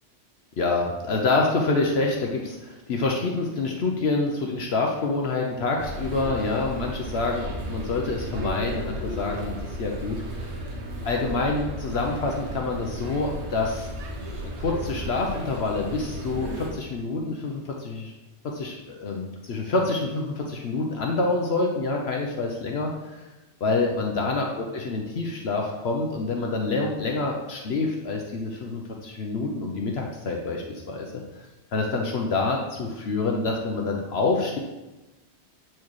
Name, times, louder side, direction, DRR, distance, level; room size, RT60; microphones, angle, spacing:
voice 1, 0.6-10.4 11.0-13.9 14.6-18.1 18.4-23.2 23.6-31.1 31.3-31.4 31.7-34.6, left 3 dB, 65° left, 1 dB, 0.9 m, -27 dB
sound 1, 5.8-16.7, right 1 dB, 75° right, 1.2 m, -34 dB
8.4 x 4.6 x 3.1 m, 1.1 s
omnidirectional pair, 1.2 m